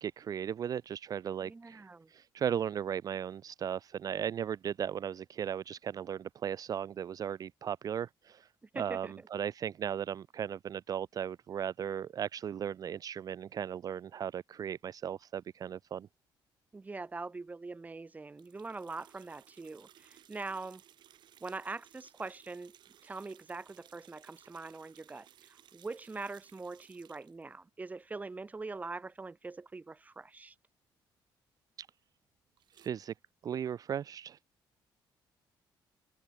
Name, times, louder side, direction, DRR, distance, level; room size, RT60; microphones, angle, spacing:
voice 1, 0.0-8.5 8.7-16.1 31.8-31.9 32.7-33.1 33.4-34.4, right 9 dB, 50° right, 0.6 m, -36 dB
voice 2, 1.4-2.1 8.6-9.1 16.7-20.8 21.4-22.8 23.0-30.5, right 3 dB, 20° right, 1.1 m, -43 dB
sound 1, 18.4-27.4 32.6-32.9, right 11 dB, 65° right, 2.2 m, -61 dB
cardioid pair, 110°, 8 cm